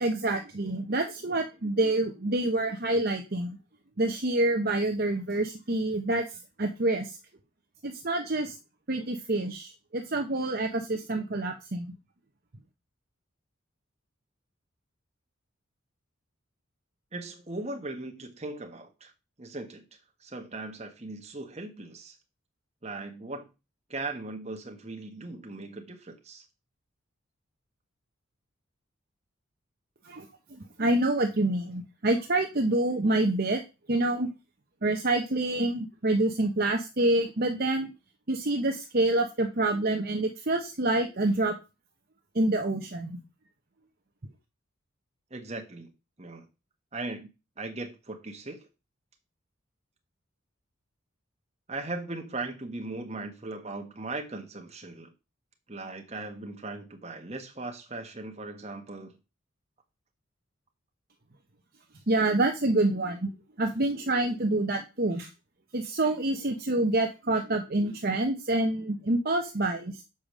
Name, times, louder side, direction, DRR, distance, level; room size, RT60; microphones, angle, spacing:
voice 1, 0.0-3.5 4.0-6.2 6.6-7.1 7.8-8.5 8.9-11.9 30.1-30.2 30.8-33.6 33.9-34.3 34.8-37.9 38.3-41.5 42.3-43.2 62.1-63.3 63.6-65.3 65.7-69.9, right 2 dB, 45° right, 0.9 m, -27 dB
voice 2, 17.1-19.1 19.4-19.8 20.2-22.1 22.8-23.5 23.9-26.4 45.3-45.9 46.2-46.4 46.9-47.3 47.6-48.6 51.7-55.1 55.7-59.2, right 2 dB, 30° right, 1.4 m, -38 dB
7.2 x 5.0 x 6.2 m
head